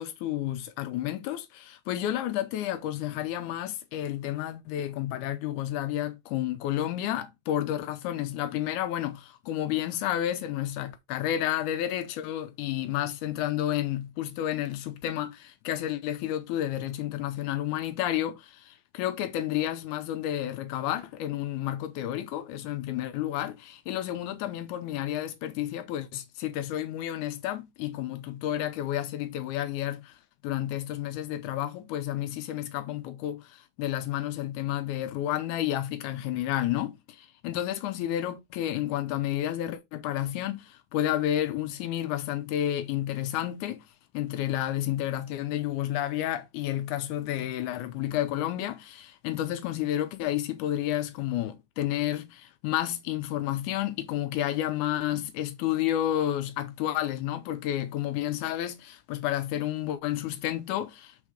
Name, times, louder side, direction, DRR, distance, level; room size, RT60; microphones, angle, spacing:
voice 1, 0.0-30.2 30.4-43.9 44.1-61.2, left 12 dB, 85° left, 2.1 m, -31 dB
6.5 x 3.6 x 4.8 m
omnidirectional pair, 3.5 m